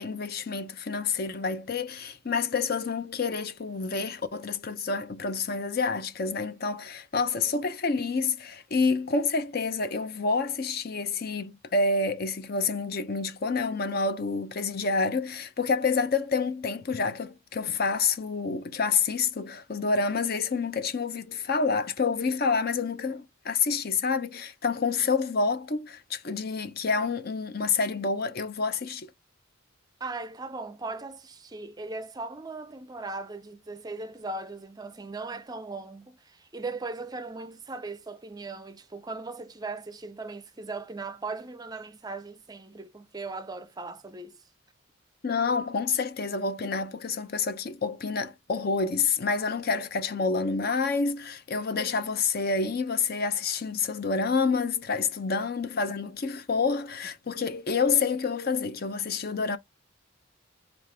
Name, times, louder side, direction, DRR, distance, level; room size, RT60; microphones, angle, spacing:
voice 1, 0.0-29.1 45.2-59.6, left 4 dB, 50° left, 0.6 m, -28 dB
voice 2, 30.0-44.4 55.9-56.0, right 3 dB, 20° right, 0.5 m, -38 dB
5.0 x 2.5 x 3.3 m
head